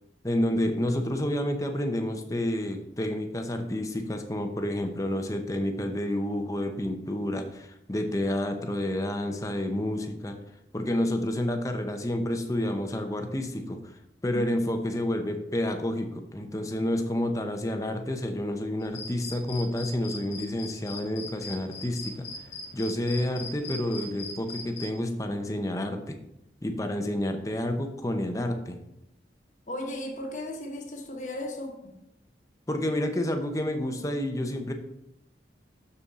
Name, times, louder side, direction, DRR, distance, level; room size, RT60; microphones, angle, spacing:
voice 1, 0.2-10.4 10.7-13.8 14.2-22.3 22.7-26.2 26.6-28.8 32.7-34.7, left 1 dB, 20° left, 0.7 m, -29 dB
sound 1, 18.8-24.9, left 3 dB, 85° left, 1.7 m, -41 dB
voice 2, 29.7-31.9, left 1 dB, 45° left, 1.2 m, -36 dB
6.9 x 6.9 x 3.7 m
head